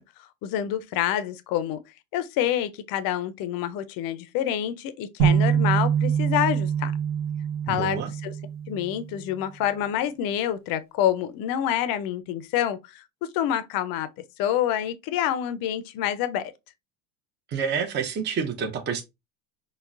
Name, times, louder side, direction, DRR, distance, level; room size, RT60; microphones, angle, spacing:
voice 1, 0.4-1.8 2.1-6.9 7.7-8.3 8.7-14.1 14.4-16.5, left 11 dB, 50° left, 0.5 m, -27 dB
sound 1, 5.2-9.2, right 8 dB, 50° right, 1.0 m, -25 dB
voice 2, 7.7-8.1 17.5-19.0, right 6 dB, 25° right, 0.5 m, -28 dB
3.8 x 2.0 x 2.3 m
hypercardioid pair, 85°, 45 cm